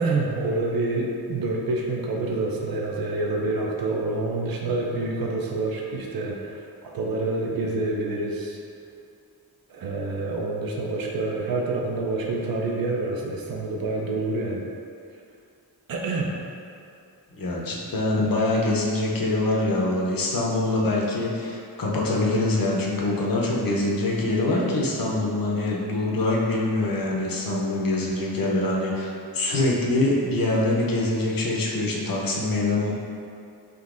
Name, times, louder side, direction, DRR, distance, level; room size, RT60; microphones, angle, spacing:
voice 1, 0.0-8.6 9.7-14.6 15.9-16.3 18.1-18.4, right 2 dB, 65° right, -1 dB, 0.5 m, -27 dB
voice 2, 17.4-32.9, left 2 dB, 60° left, -3 dB, 0.6 m, -24 dB
3.7 x 2.6 x 2.4 m, 2.5 s
wide cardioid pair, 45°, 39 cm